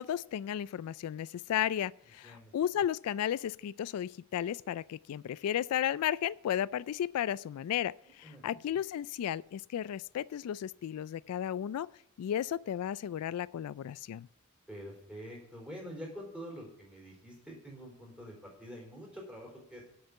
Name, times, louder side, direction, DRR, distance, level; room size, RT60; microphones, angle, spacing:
voice 1, 0.0-11.9 12.2-14.3, left 10 dB, 85° left, 0.3 m, -34 dB
voice 2, 8.0-8.6 14.7-19.8, equal, 5° right, 4.0 m, -46 dB
8.0 x 6.7 x 8.4 m
head